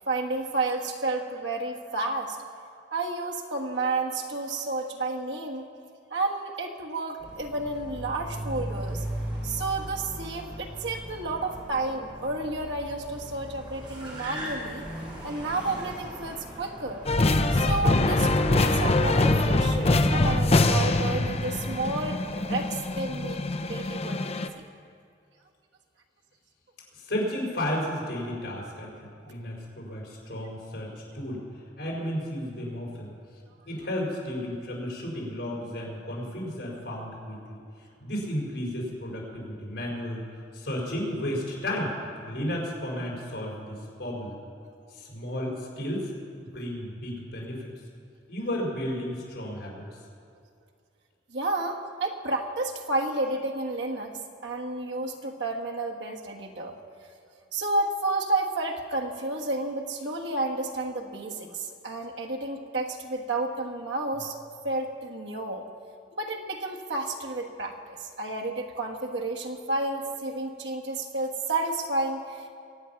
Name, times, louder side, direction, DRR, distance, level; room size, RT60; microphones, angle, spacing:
voice 1, 0.1-2.4 2.9-5.7 6.1-9.0 9.4-14.9 15.2-17.0 17.5-23.4 23.6-24.6 51.3-56.8 57.5-64.4 64.6-65.6 66.1-72.5, right 2 dB, 80° right, 1 dB, 1.4 m, -31 dB
Car, 7.2-23.9, right 1 dB, 25° right, 3.6 m, -39 dB
sound 1, 17.1-24.5, left 2 dB, 35° left, 0.6 m, -24 dB
voice 2, 26.9-31.4 31.8-33.1 33.6-37.6 38.0-40.2 40.5-41.9 42.2-44.4 44.9-46.1 46.4-47.7 48.3-49.8, left 1 dB, 70° left, -2 dB, 4.8 m, -33 dB
23.5 x 8.7 x 5.8 m, 2.4 s
head